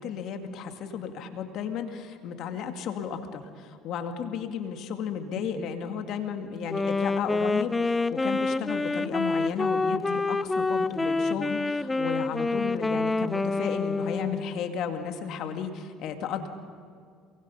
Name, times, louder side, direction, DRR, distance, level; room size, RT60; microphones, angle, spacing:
voice 1, 0.0-16.5, left 7 dB, 65° left, 6 dB, 2.2 m, -34 dB
Wind instrument woodwind instrument, 6.7-14.7, left 3 dB, 15° left, 0.6 m, -27 dB
28.0 x 23.0 x 5.7 m, 2.1 s
supercardioid pair, 85°, 0 cm